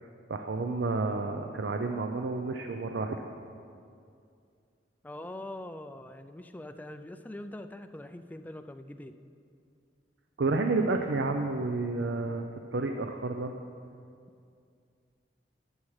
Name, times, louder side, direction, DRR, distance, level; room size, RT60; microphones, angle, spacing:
voice 1, 0.3-3.3 10.4-12.5 12.7-13.5, right 3 dB, 75° right, 5 dB, 0.5 m, -30 dB
voice 2, 5.0-9.2, left 1 dB, 10° left, 8 dB, 0.3 m, -43 dB
18.5 x 7.2 x 3.2 m, 2.4 s
head